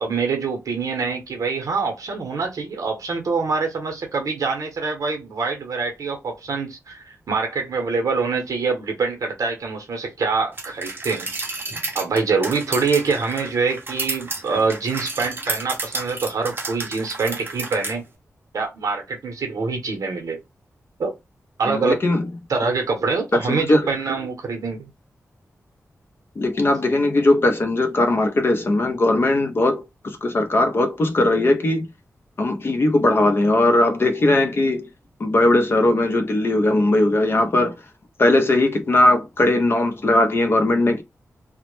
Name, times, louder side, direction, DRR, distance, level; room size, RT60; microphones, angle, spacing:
voice 1, 0.0-11.3 11.9-18.0 18.5-20.4 21.0-21.1 21.6-22.0 22.5-24.9, right 4 dB, 75° right, 0.7 m, -25 dB
sound 1, 10.6-18.0, right 3 dB, 40° right, 0.6 m, -31 dB
voice 2, 21.6-22.2 23.5-23.8 26.4-31.9 32.4-34.9 35.2-37.7 38.2-41.0, left 2 dB, 40° left, 0.5 m, -19 dB
2.1 x 2.0 x 2.9 m
wide cardioid pair, 150°, 6 cm